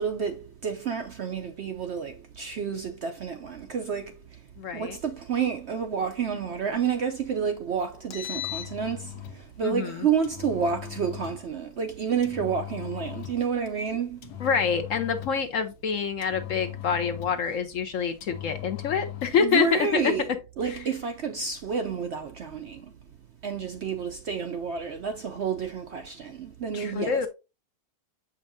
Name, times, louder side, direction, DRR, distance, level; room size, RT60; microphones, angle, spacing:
voice 1, 0.0-4.1 4.7-9.1 9.6-14.3 19.4-22.8 23.4-27.3, right 6 dB, 65° right, 0.7 m, -29 dB
voice 2, 4.6-5.0 9.6-10.1 14.4-20.1 20.6-20.8 26.7-27.3, left 6 dB, 60° left, 0.9 m, -26 dB
Engine, 7.9-9.4 10.2-11.4 12.2-13.5 14.2-15.5 16.2-17.6 18.2-19.4, left 13 dB, 80° left, 1.3 m, -38 dB
7.3 x 5.4 x 2.6 m
omnidirectional pair, 1.7 m